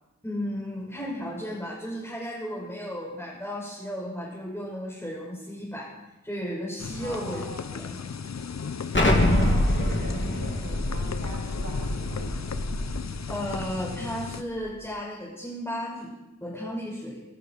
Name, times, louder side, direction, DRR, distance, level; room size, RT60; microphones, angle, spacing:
voice 1, 0.2-5.9 6.2-7.4 7.7-8.0 13.3-16.1 16.4-17.2, equal, 10° left, -5 dB, 5.3 m, -34 dB
sound 1, 6.8-14.4, left 6 dB, 60° left, 0.7 m, -36 dB
voice 2, 7.0-7.7 9.2-12.6, right 2 dB, 80° right, -4 dB, 2.9 m, -42 dB
Explosion, 8.9-13.6, left 1 dB, 40° left, 2.8 m, -25 dB
25.0 x 12.0 x 4.6 m, 1.0 s
wide cardioid pair, 75°, 30 cm